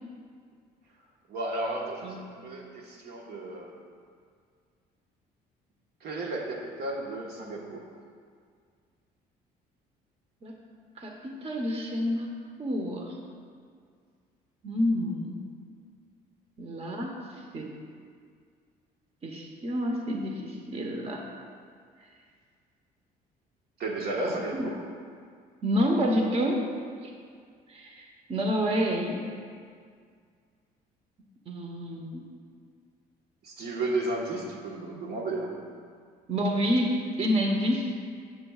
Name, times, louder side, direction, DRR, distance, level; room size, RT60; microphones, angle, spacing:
voice 1, 1.3-3.7 6.0-7.9 23.8-24.8 33.4-35.6, right 2 dB, 70° right, -1 dB, 1.4 m, -33 dB
voice 2, 11.0-13.2 14.6-15.4 16.6-17.7 19.2-21.2 24.6-24.7 25.6-26.7 27.0-27.1 27.7-29.2 31.5-32.2 36.3-37.9, equal, 35° right, 1 dB, 1.0 m, -29 dB
15.0 x 7.2 x 2.4 m, 2.1 s
cardioid pair, 110°, 17 cm